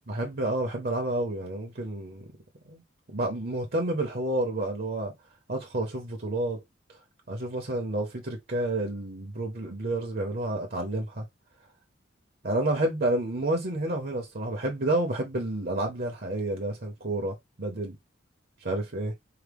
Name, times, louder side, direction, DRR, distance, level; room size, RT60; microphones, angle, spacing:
voice 1, 0.1-2.3 2.7-2.8 3.1-5.1 5.5-6.6 6.9-7.0 7.3-11.2 12.4-18.0 18.6-19.1, right 1 dB, 50° right, 0.9 m, -30 dB
4.8 x 2.2 x 3.4 m
head